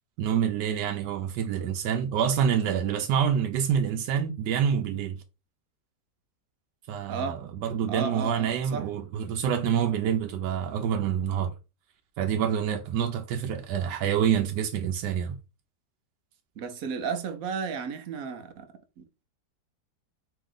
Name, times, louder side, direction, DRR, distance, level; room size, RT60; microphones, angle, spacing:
voice 1, 0.2-5.2 6.9-11.5 12.2-15.4, right 8 dB, 90° right, 1.2 m, -27 dB
voice 2, 7.1-7.4 7.9-8.9 16.6-18.7 19.0-19.2, right 5 dB, 65° right, 1.0 m, -33 dB
4.3 x 3.0 x 3.8 m
omnidirectional pair, 1.8 m